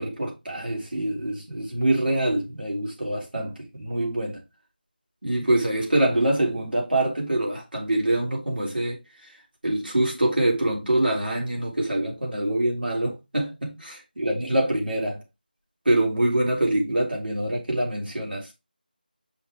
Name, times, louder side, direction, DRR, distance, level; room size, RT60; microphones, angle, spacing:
voice 1, 0.0-4.4 5.2-9.0 9.6-15.2 15.9-18.5, right 1 dB, 75° right, 3.5 m, -25 dB
5.5 x 5.4 x 3.6 m
figure-of-eight pair, 170°, 5 cm